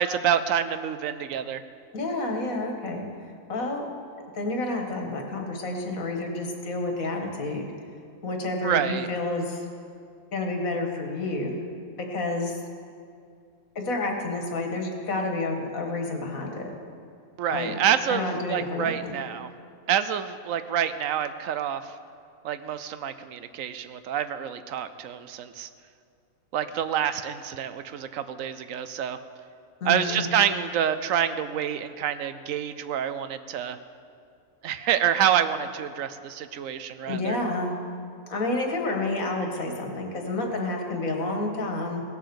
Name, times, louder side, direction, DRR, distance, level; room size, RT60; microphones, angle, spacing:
voice 1, 0.0-1.6 8.6-9.1 17.4-19.5 19.9-21.9 22.4-25.7 26.5-29.2 29.8-33.8 34.6-37.4, right 9 dB, 75° right, 12 dB, 1.0 m, -27 dB
voice 2, 1.9-3.1 3.5-3.8 4.3-7.7 8.2-9.6 10.3-11.5 12.0-12.6 13.8-16.7 17.5-17.7 18.1-19.2 29.8-30.3 37.1-37.8 38.3-42.0, left 2 dB, 75° left, 2 dB, 2.0 m, -29 dB
17.5 x 7.5 x 6.9 m, 2.4 s
omnidirectional pair, 1.4 m